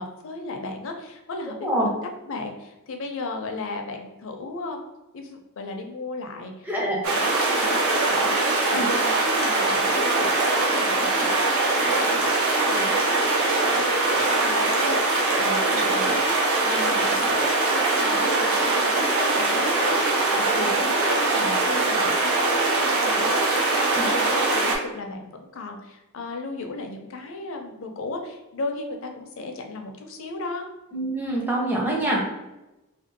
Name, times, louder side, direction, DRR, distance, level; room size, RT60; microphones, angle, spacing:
voice 1, 0.0-2.0 2.2-4.8 5.1-13.9 14.2-30.7, left 3 dB, 60° left, 4 dB, 0.4 m, -35 dB
voice 2, 6.7-7.0 8.7-8.9 24.0-24.1 30.9-32.2, right 1 dB, 10° right, -4 dB, 0.6 m, -25 dB
sound 1, 7.0-24.8, right 3 dB, 65° right, 0.6 m, -22 dB
2.5 x 2.3 x 2.6 m, 0.99 s
head